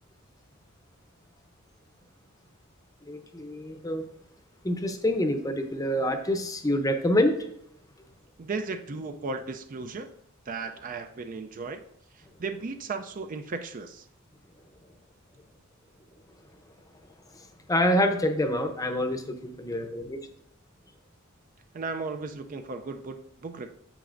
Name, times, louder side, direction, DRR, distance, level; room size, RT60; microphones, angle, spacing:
voice 1, 3.1-4.0 4.6-7.5 17.7-20.2, left 1 dB, 15° left, 0.7 m, -26 dB
voice 2, 8.4-10.1 10.5-11.8 12.1-14.1 21.7-23.7, right 4 dB, 40° right, 0.4 m, -35 dB
8.8 x 7.0 x 2.5 m
head